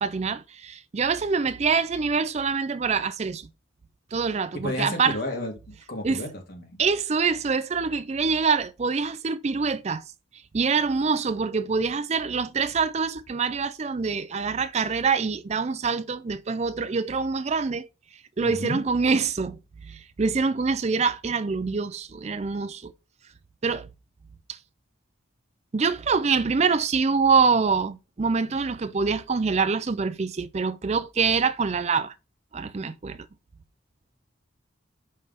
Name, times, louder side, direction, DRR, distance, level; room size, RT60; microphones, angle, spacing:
voice 1, 0.0-3.5 4.1-5.2 6.0-6.2 6.8-10.0 10.5-17.9 18.4-22.9 23.6-23.9 24.5-24.6 25.7-32.1 32.5-33.3, right 5 dB, 35° right, 0.4 m, -25 dB
voice 2, 4.5-5.5 5.9-6.8 18.4-18.8, left 1 dB, 50° left, 1.5 m, -32 dB
5.7 x 3.3 x 5.0 m
head